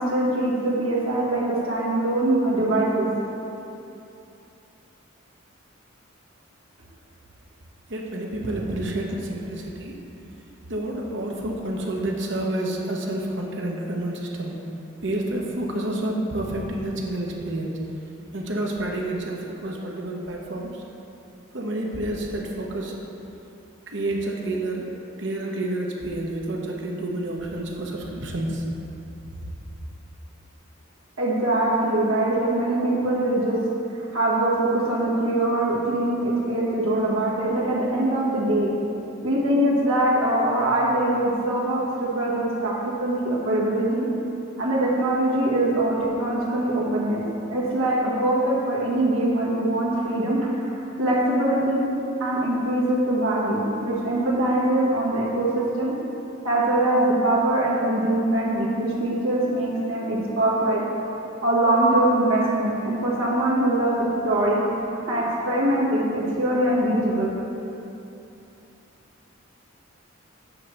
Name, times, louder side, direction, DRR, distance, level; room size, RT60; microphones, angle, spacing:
voice 1, 0.0-3.1 31.2-33.6 33.9-38.7 39.2-42.7 43.0-44.1 44.6-47.2 47.5-51.8 52.2-55.9 56.4-60.8 61.4-64.6 65.1-67.3, right 1 dB, 85° right, -6 dB, 1.7 m, -23 dB
voice 2, 7.9-10.0 10.7-14.5 15.0-17.7 18.3-20.7 21.5-23.0 23.9-24.9 25.2-28.6, right 1 dB, 60° right, 0 dB, 0.9 m, -29 dB
8.4 x 3.3 x 6.5 m, 2.8 s
head